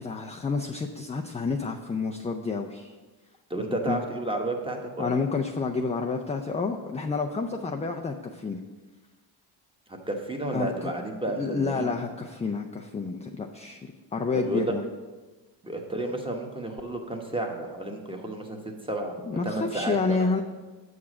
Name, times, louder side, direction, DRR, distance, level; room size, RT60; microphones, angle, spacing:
voice 1, 0.0-2.9 3.9-4.0 5.0-8.6 10.5-10.9 11.4-14.8 19.3-20.4, left 4 dB, 15° left, 3 dB, 0.4 m, -29 dB
voice 2, 3.5-5.2 9.9-11.9 14.3-14.7 15.6-18.6 18.9-19.1 19.4-20.3, right 1 dB, 10° right, 2 dB, 1.2 m, -31 dB
7.1 x 4.8 x 6.1 m, 1.3 s
cardioid pair, 85°, 49 cm